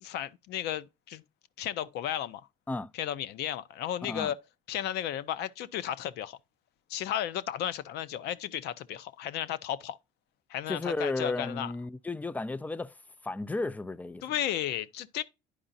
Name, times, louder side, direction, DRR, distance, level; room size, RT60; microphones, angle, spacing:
voice 1, 0.0-1.2 1.6-2.4 2.9-4.4 4.7-6.4 6.9-10.0 10.5-11.7 14.2-15.2, left 11 dB, 80° left, 0.6 m, -34 dB
voice 2, 4.0-4.3 10.7-13.0 13.2-14.2, left 2 dB, 10° left, 0.3 m, -33 dB
10.0 x 4.8 x 2.6 m
cardioid pair, 110°, 17 cm